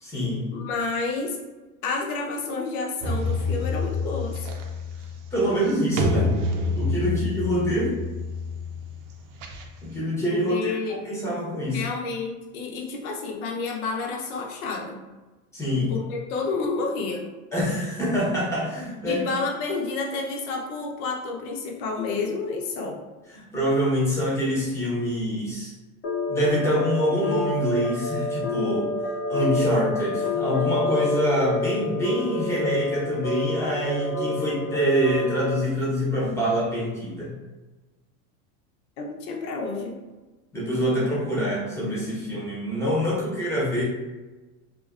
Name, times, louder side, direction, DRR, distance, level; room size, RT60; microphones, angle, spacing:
voice 1, 0.0-0.4 5.3-6.3 6.8-7.9 9.8-11.8 15.5-15.9 17.5-19.3 23.3-25.7 26.3-28.9 29.3-37.3 40.5-43.8, equal, 5° left, -5 dB, 0.7 m, -25 dB
voice 2, 0.5-1.4 1.8-4.5 7.0-7.3 10.3-11.0 11.7-15.0 15.9-17.3 19.0-23.0 39.0-40.0, left 4 dB, 70° left, 1 dB, 0.7 m, -30 dB
sound 1, 3.0-10.0, left 2 dB, 65° right, 0.6 m, -28 dB
sound 2, 26.0-35.6, left 3 dB, 30° left, 0.4 m, -28 dB
2.5 x 2.2 x 2.4 m, 1.2 s
supercardioid pair, 115°, 44 cm